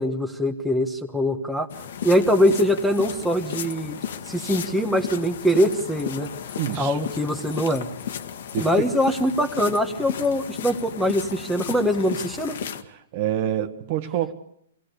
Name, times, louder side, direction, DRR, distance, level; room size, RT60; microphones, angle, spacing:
voice 1, 0.0-1.7 2.0-6.3 6.8-7.9 8.6-12.6, equal, ahead, 1.4 m, -23 dB
sound 1, 1.7-12.8, left 8 dB, 65° left, 1.6 m, -34 dB
voice 2, 6.6-7.0 8.5-8.9 12.8-14.3, right 10 dB, 40° right, 1.5 m, -27 dB
25.0 x 18.0 x 6.7 m
hypercardioid pair, 155°, 0 cm